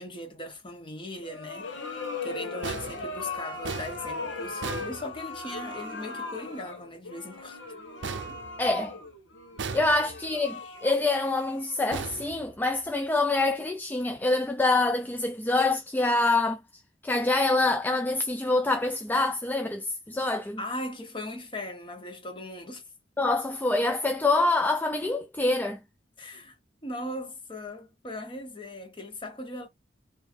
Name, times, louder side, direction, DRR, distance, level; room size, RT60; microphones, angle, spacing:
voice 1, 0.0-1.7 2.2-7.6 8.3-8.4 20.6-22.8 26.2-26.5 26.8-29.7, left 1 dB, 25° left, 1.3 m, -38 dB
sound 1, 1.2-12.2, left 3 dB, 85° left, 1.1 m, -38 dB
sound 2, 2.6-5.7 8.0-9.1 9.6-10.4 11.9-13.0, right 5 dB, 70° right, 0.5 m, -38 dB
voice 2, 8.6-9.0 9.7-16.6 17.0-20.6 23.2-25.8, left 2 dB, 10° left, 0.4 m, -26 dB
3.4 x 2.8 x 4.4 m
head